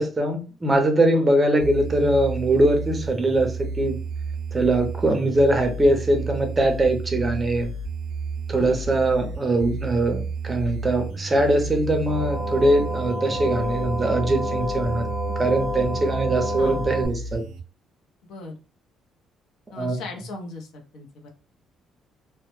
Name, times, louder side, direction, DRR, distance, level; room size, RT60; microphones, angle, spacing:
voice 1, 0.0-4.0 4.5-7.7 8.5-15.1 15.4-17.4 19.8-19.9, right 1 dB, 15° right, 4 dB, 0.5 m, -22 dB
sound 1, 1.6-17.6, right 4 dB, 75° right, 0.3 m, -32 dB
sound 2, 12.1-17.1, left 2 dB, 25° left, 0.7 m, -30 dB
voice 2, 18.2-18.5 19.7-21.3, left 3 dB, 70° left, 2 dB, 0.6 m, -38 dB
2.1 x 2.0 x 3.0 m, 0.35 s
cardioid pair, 150°, 0 cm